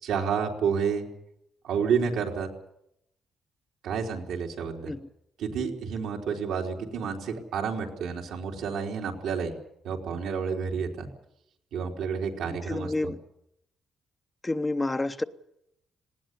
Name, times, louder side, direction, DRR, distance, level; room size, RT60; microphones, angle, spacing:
voice 1, 0.0-1.0 1.6-2.5 3.8-4.9 5.4-9.5 9.8-11.1 11.7-13.1, right 6 dB, 85° right, 3.9 m, -30 dB
voice 2, 12.7-13.2 14.4-15.2, left 2 dB, 15° left, 0.8 m, -29 dB
19.0 x 17.5 x 9.9 m
cardioid pair, 115°, 0 cm